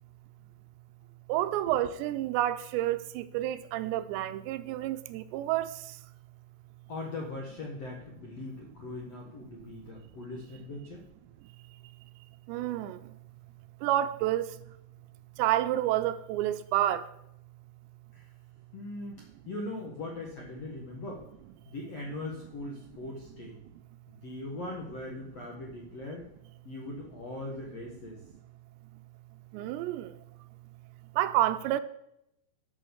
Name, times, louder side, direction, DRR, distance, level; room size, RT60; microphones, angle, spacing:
voice 1, 1.3-5.7 12.5-13.0 13.8-14.5 15.4-17.1 29.5-30.1 31.2-31.8, right 13 dB, 85° right, 2.7 m, -29 dB
voice 2, 6.9-11.0 18.1-18.3 18.7-21.3 21.7-23.6 24.2-26.3 26.6-28.2, left 2 dB, 60° left, 1.7 m, -40 dB
12.5 x 6.6 x 7.1 m
omnidirectional pair, 5.1 m